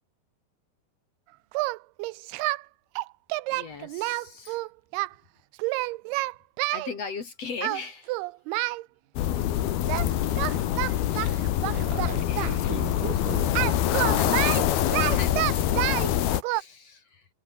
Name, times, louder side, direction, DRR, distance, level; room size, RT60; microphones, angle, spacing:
Singing, 1.5-2.6 3.0-5.1 5.6-6.9 7.6-8.8 9.9-10.1 10.4-12.6 13.5-16.1 16.4-16.6, right 20 dB, 80° right, 2.5 m, -28 dB
voice 1, 3.5-4.6 6.7-8.2 12.2-12.9 14.2-14.8 15.1-17.3, left 5 dB, 45° left, 3.0 m, -40 dB
sound 1, 9.2-16.4, left 12 dB, 70° left, 3.4 m, -25 dB
voice 2, 10.6-11.4 11.6-13.6, right 11 dB, 65° right, 2.2 m, -39 dB
open air
omnidirectional pair, 4.8 m